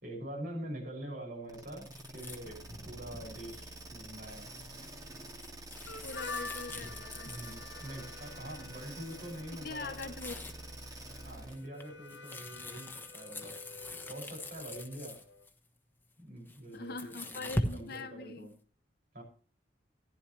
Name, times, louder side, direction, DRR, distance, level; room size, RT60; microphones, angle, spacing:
voice 1, 0.0-4.5 7.2-10.1 11.2-13.6 14.1-15.2 16.2-18.5 19.1-19.2, right 1 dB, 55° right, 0 dB, 6.2 m, -45 dB
sound 1, 1.5-11.7, right 1 dB, 20° right, 2.2 m, -47 dB
sound 2, 1.9-7.9 8.5-8.8 9.1-9.2 9.5-10.6 11.1-15.5 16.4-18.0, left 1 dB, 10° left, 1.1 m, -42 dB
Harmonica, 5.9-15.5, left 4 dB, 80° left, 1.3 m, -48 dB
voice 2, 6.0-7.4 9.6-10.4 16.7-18.5, left 3 dB, 55° left, 8 dB, 1.0 m, -43 dB
15.0 x 11.5 x 3.2 m, 0.41 s
head